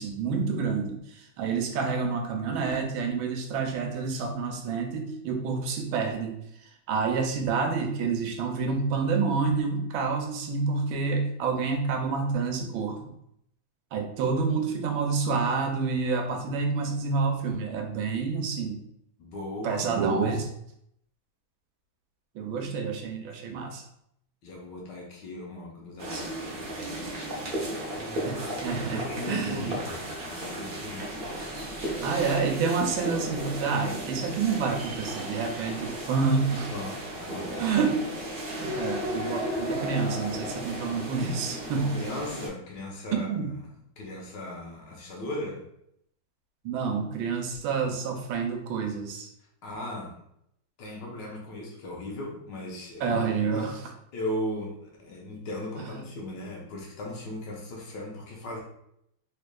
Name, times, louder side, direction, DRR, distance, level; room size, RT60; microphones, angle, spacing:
voice 1, 0.0-6.4 6.9-13.0 13.9-18.8 19.6-20.5 22.3-23.8 28.6-29.7 32.0-36.7 37.6-38.0 38.6-42.0 43.1-43.5 46.6-49.3 53.0-53.8, right 5 dB, 80° right, 3 dB, 1.4 m, -28 dB
voice 2, 19.2-20.3 24.4-27.7 28.9-31.1 36.7-37.7 38.7-39.0 41.7-43.5 44.0-45.6 49.6-50.2 50.8-53.2 53.5-53.7 54.1-58.6, left 1 dB, 65° left, -2 dB, 1.3 m, -38 dB
sound 1, 26.0-42.5, right 1 dB, 55° right, 0.6 m, -35 dB
3.5 x 3.3 x 2.2 m, 0.75 s
omnidirectional pair, 2.2 m